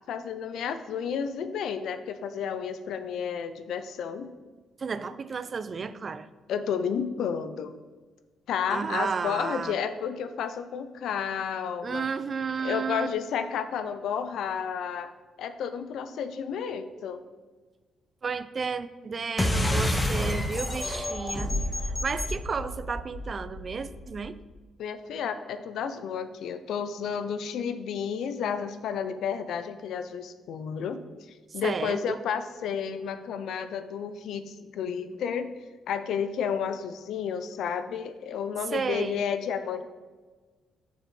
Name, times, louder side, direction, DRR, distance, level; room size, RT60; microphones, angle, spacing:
voice 1, 0.1-4.3 6.5-7.7 8.5-12.1 12.6-15.1 15.4-17.2 24.8-31.0 31.5-35.5 35.9-39.8, left 7 dB, 75° left, 11 dB, 0.4 m, -31 dB
voice 2, 4.8-6.3 8.7-9.8 11.8-13.1 18.2-21.5 21.8-24.4 31.6-32.2 38.7-39.3, right 5 dB, 40° right, 14 dB, 0.3 m, -32 dB
sound 1, 19.4-24.3, left 1 dB, 15° left, 0.7 m, -29 dB
6.6 x 6.2 x 3.2 m, 1.3 s
cardioid pair, 90°, 0 cm